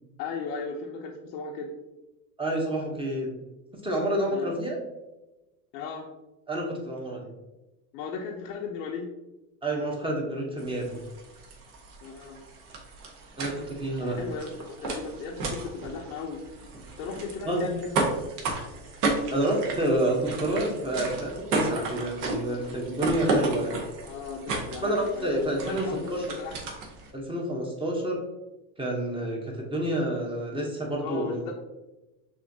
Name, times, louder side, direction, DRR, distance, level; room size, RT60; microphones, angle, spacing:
voice 1, 0.2-1.7 4.3-4.5 5.7-6.1 7.9-9.1 12.0-12.4 14.0-16.4 17.0-17.9 24.0-26.6 31.0-31.5, left 5 dB, 70° left, 0 dB, 0.8 m, -36 dB
voice 2, 2.4-3.3 3.8-4.8 6.5-7.3 9.6-10.9 13.4-14.2 17.4-17.7 19.3-23.8 24.8-26.4 27.1-28.2 28.8-31.4, right 1 dB, 10° right, -1 dB, 0.9 m, -28 dB
sound 1, 10.6-27.1, right 2 dB, 65° right, 1.3 m, -33 dB
6.2 x 2.8 x 2.7 m, 1.0 s
supercardioid pair, 115°, 49 cm